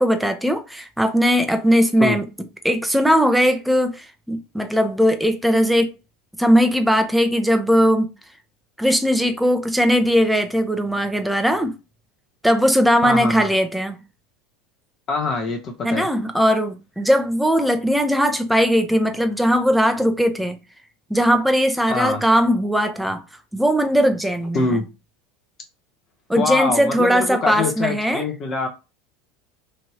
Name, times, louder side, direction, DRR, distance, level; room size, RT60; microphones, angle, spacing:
voice 1, 0.0-2.2 2.6-5.9 6.4-8.1 8.8-11.7 12.4-14.0 15.8-20.6 21.1-23.2 23.5-24.8 26.3-28.2, equal, 5° right, 0.6 m, -19 dB
voice 2, 13.0-13.5 15.1-16.1 21.9-22.2 24.5-24.8 26.4-28.7, left 3 dB, 40° left, 0.7 m, -24 dB
3.1 x 2.6 x 2.8 m
hypercardioid pair, 80°, 0 cm